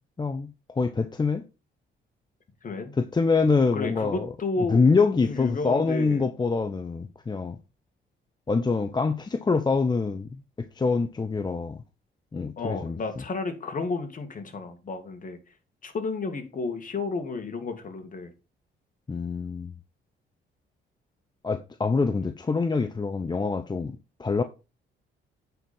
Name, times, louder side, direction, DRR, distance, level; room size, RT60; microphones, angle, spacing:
voice 1, 0.2-0.5 0.8-1.4 3.0-4.3 4.7-7.6 8.5-10.4 10.8-11.8 12.3-13.0 19.1-19.7 21.4-23.9 24.2-24.4, left 4 dB, 20° left, 0.7 m, -25 dB
voice 2, 2.6-2.9 3.7-4.8 5.2-6.2 12.6-15.4 15.8-18.3, left 3 dB, 40° left, 2.1 m, -32 dB
9.1 x 4.4 x 5.4 m
cardioid pair, 90°, 20 cm